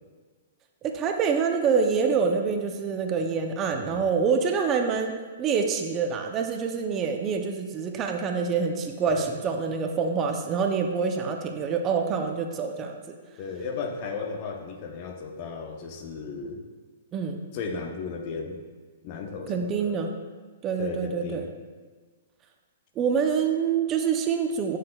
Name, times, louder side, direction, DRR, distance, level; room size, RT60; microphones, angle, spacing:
voice 1, 0.8-13.2 17.1-17.4 19.5-20.1 20.6-21.4 23.0-24.8, right 6 dB, 25° right, 4 dB, 0.6 m, -26 dB
voice 2, 3.7-4.2 9.1-9.3 13.4-16.6 17.5-18.6 19.0-20.0 20.8-21.5, left 4 dB, 45° left, 4 dB, 0.8 m, -35 dB
9.4 x 6.4 x 2.3 m, 1.4 s
hypercardioid pair, 130°, 0 cm